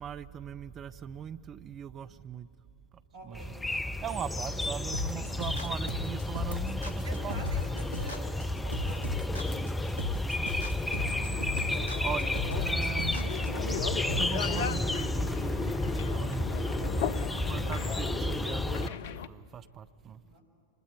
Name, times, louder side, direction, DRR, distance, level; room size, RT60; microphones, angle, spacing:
voice 1, 0.0-2.5 3.2-3.5 4.0-7.5 11.1-11.3 12.0-13.3 14.1-15.6 16.1-16.7 17.5-20.2, right 9 dB, 25° right, 11 dB, 0.6 m, -40 dB
voice 2, 3.1-3.7 5.1-5.4 7.0-9.7 16.7-17.3 20.2-20.4, equal, 60° right, 3 dB, 6.1 m, -47 dB
sound 1, 3.3-18.9, left 1 dB, 10° left, 0.7 m, -32 dB
sound 2, 4.9-15.0, left 3 dB, 90° right, 1.3 m, -37 dB
sound 3, 10.9-19.3, left 9 dB, 55° left, 0.5 m, -38 dB
25.5 x 21.5 x 9.2 m, 2.5 s
figure-of-eight pair, 90°, 0 cm